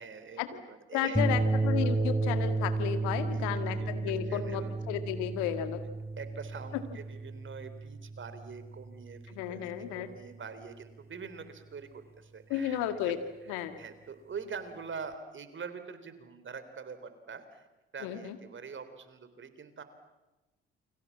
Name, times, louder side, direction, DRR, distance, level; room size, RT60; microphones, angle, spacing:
voice 1, 0.0-1.2 3.3-4.8 6.2-13.1 13.8-17.7 17.9-19.8, right 5 dB, 40° right, 11 dB, 3.7 m, -44 dB
voice 2, 0.9-5.8 9.3-10.1 12.5-13.2 13.5-13.8 18.0-18.4, left 10 dB, 70° left, 9 dB, 2.1 m, -33 dB
sound 1, 1.2-9.6, right 2 dB, 10° right, 3.3 m, -32 dB
29.0 x 24.5 x 7.4 m, 1.1 s
hypercardioid pair, 50°, 30 cm